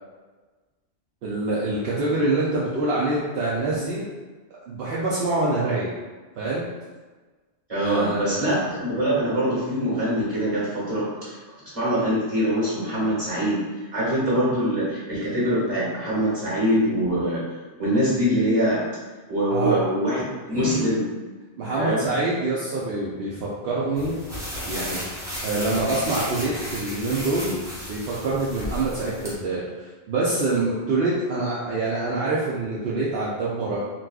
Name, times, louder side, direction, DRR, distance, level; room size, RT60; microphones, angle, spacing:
voice 1, 1.2-4.1 4.7-5.9 6.4-6.7 7.8-8.4 19.5-19.8 20.5-20.8 21.6-24.2 24.6-25.0 25.4-27.6 27.9-33.8, right 2 dB, 70° right, -7 dB, 0.8 m, -25 dB
voice 2, 7.7-11.4 11.7-17.4 17.8-18.8 19.3-21.1 21.7-22.0, equal, 30° right, -9 dB, 1.4 m, -24 dB
sound 1, 24.0-29.3, equal, 5° right, 0.7 m, -34 dB
4.0 x 2.3 x 2.3 m, 1.3 s
omnidirectional pair, 1.1 m